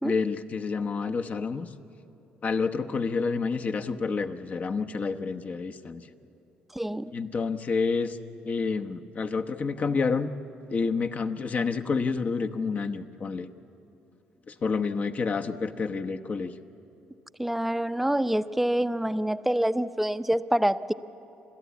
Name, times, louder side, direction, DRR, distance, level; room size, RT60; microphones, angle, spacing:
voice 1, 0.0-1.7 2.4-6.1 7.1-8.2 8.4-10.3 10.7-13.5 14.5-16.5, left 4 dB, 45° left, 7 dB, 1.0 m, -29 dB
voice 2, 6.7-7.1 17.4-20.9, right 1 dB, 5° right, 11 dB, 0.6 m, -26 dB
29.5 x 13.0 x 8.4 m, 2.9 s
supercardioid pair, 75°, 4 cm